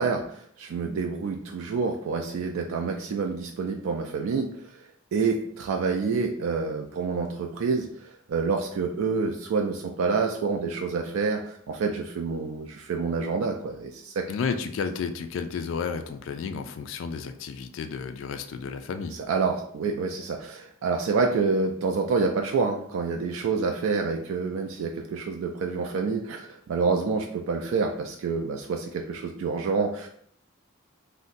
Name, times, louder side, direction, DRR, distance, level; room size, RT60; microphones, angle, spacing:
voice 1, 0.0-4.8 5.1-14.3 19.3-30.1, right 4 dB, 80° right, 2 dB, 0.3 m, -28 dB
voice 2, 14.3-19.2, left 5 dB, 65° left, 9 dB, 0.3 m, -32 dB
2.5 x 2.1 x 3.8 m, 0.64 s
head